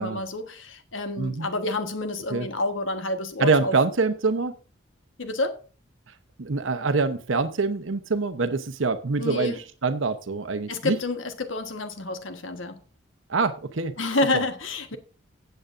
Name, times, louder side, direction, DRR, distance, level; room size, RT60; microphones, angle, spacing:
voice 1, 0.0-3.7 5.2-5.6 9.2-9.6 10.7-12.8 14.0-15.0, left 2 dB, 90° left, 1.3 m, -29 dB
voice 2, 1.2-1.5 2.3-2.5 3.4-4.5 6.4-11.0 13.3-13.9 14.3-14.4, right 4 dB, 90° right, 0.8 m, -25 dB
16.0 x 8.0 x 2.6 m
head